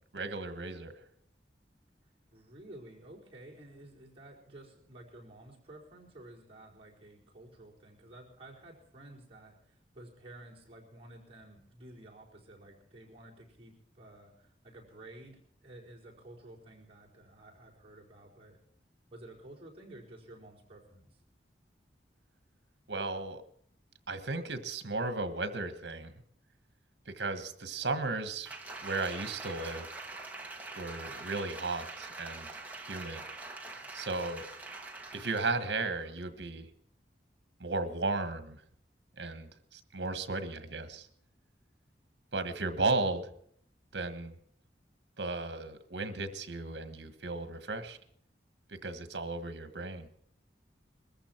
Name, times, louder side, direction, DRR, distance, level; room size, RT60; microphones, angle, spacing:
voice 1, 0.1-1.0 22.9-23.4 24.1-26.1 27.1-28.5 28.8-29.9 30.8-32.5 32.9-33.2 33.9-34.5 35.1-36.7 37.6-38.6 39.2-41.1 42.3-43.3 43.9-44.3 45.2-48.0 48.7-50.1, right 3 dB, 80° right, 11 dB, 1.5 m, -35 dB
voice 2, 2.3-18.6 19.1-21.2 42.4-42.6, right 1 dB, 30° right, -4 dB, 4.5 m, -52 dB
Applause, 28.5-35.6 36.0-36.1, right 3 dB, 10° right, 1.7 m, -44 dB
21.5 x 14.5 x 4.5 m, 0.63 s
head